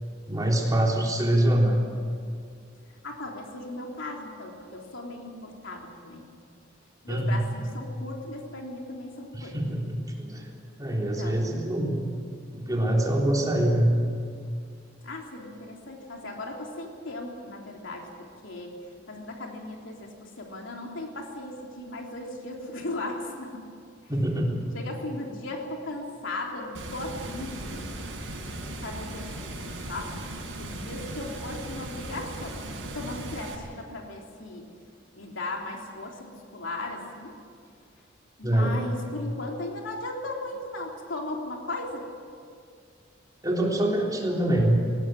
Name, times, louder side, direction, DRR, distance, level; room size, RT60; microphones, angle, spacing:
voice 1, 0.3-1.8 7.1-7.5 9.3-10.5 10.8-12.0 12.5-13.9 24.1-24.6 38.4-38.8 39.1-39.2 43.4-44.9, right 1 dB, 20° right, -1 dB, 3.7 m, -24 dB
voice 2, 3.0-6.3 7.0-9.6 10.9-11.7 15.0-18.8 19.1-23.6 24.7-27.9 28.6-30.2 30.6-34.7 35.2-37.4 38.4-42.1, left 2 dB, 85° left, 1 dB, 3.5 m, -37 dB
Water, 26.7-33.5, right 1 dB, 85° right, 5.7 m, -37 dB
20.5 x 17.5 x 9.3 m, 2.2 s
head